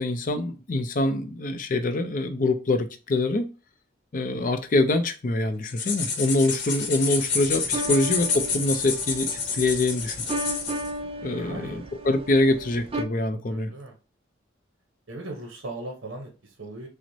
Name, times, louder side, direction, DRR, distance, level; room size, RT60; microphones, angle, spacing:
voice 1, 0.0-3.5 4.1-10.2 11.2-13.7, left 2 dB, 40° left, 0.4 m, -25 dB
sound 1, 5.6-10.9, left 5 dB, 60° left, 0.9 m, -29 dB
sound 2, 7.3-13.0, right 1 dB, 30° right, 0.4 m, -35 dB
voice 2, 11.4-11.9 13.5-14.0 15.1-16.9, right 2 dB, 65° right, 0.8 m, -38 dB
6.0 x 2.1 x 2.7 m
head